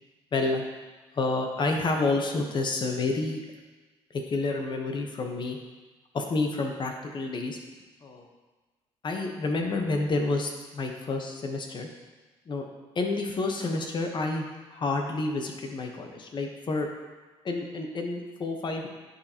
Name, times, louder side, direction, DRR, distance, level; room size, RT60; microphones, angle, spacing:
voice 1, 0.3-0.6 1.1-3.4 4.1-5.6 6.1-7.6 8.0-8.3 9.0-11.9 12.5-12.6 12.9-14.4 14.7-16.9 17.4-18.9, left 3 dB, 45° left, 3 dB, 1.1 m, -29 dB
10.5 x 4.3 x 3.0 m, 1.3 s
cardioid pair, 80°, 11 cm